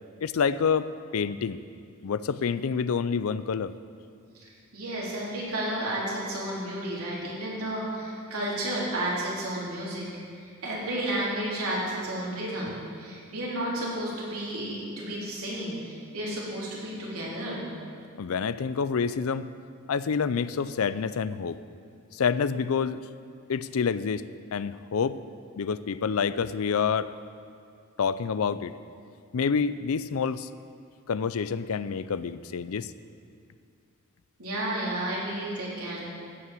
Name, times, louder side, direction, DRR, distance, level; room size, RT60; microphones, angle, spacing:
voice 1, 0.2-1.6 2.0-3.8 18.2-19.5 19.9-21.6 22.1-23.0 23.5-25.2 25.6-27.1 28.0-28.7 29.3-30.5 31.1-32.9, left 6 dB, 75° left, 15 dB, 0.4 m, -27 dB
voice 2, 4.7-10.0 10.4-17.7 34.4-36.0, right 1 dB, 85° right, -5 dB, 3.6 m, -32 dB
15.5 x 5.8 x 7.6 m, 2.3 s
head